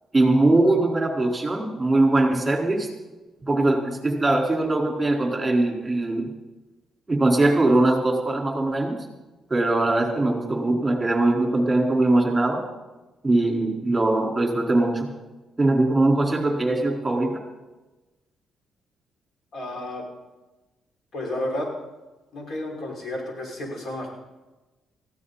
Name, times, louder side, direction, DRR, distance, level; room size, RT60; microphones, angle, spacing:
voice 1, 0.1-2.9 3.5-6.2 7.1-9.0 9.5-12.6 13.2-15.1 15.6-17.4, right 2 dB, 15° right, 0 dB, 4.3 m, -21 dB
voice 2, 19.5-20.0 21.1-21.7 22.3-24.1, left 1 dB, 55° left, -1 dB, 5.9 m, -31 dB
19.5 x 15.0 x 4.2 m, 1.1 s
cardioid pair, 90°, 0 cm